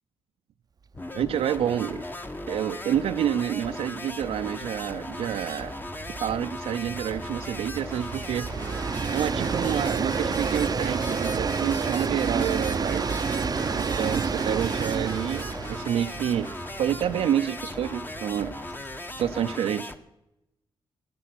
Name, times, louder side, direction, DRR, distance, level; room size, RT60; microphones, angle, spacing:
sound 1, 0.9-20.0, left 2 dB, 20° left, 1.1 m, -38 dB
voice 1, 1.1-2.0 2.5-5.7 6.1-8.5 9.1-13.1 13.7-16.5 16.8-18.5 19.2-19.9, right 10 dB, 85° right, 6 dB, 0.6 m, -28 dB
Train, 1.3-1.4 1.8-1.9 2.1-19.5, right 5 dB, 40° right, 0.6 m, -31 dB
16.0 x 10.5 x 6.0 m, 0.91 s
cardioid pair, 75°, 10 cm